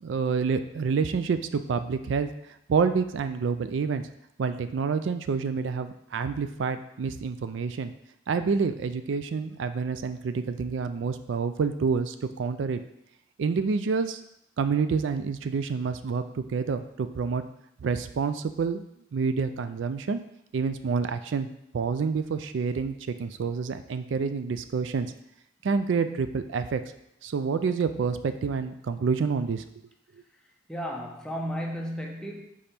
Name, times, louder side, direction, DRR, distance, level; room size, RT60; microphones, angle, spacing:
voice 1, 0.0-2.3 2.7-4.0 4.4-7.9 8.3-12.8 13.4-14.2 14.6-17.4 17.8-18.8 19.1-20.2 20.5-21.5 21.7-25.1 25.6-26.8 27.2-29.6, right 5 dB, 70° right, 10 dB, 0.4 m, -28 dB
voice 2, 30.7-32.4, equal, 5° left, 0 dB, 0.8 m, -33 dB
5.2 x 4.9 x 4.3 m, 0.77 s
head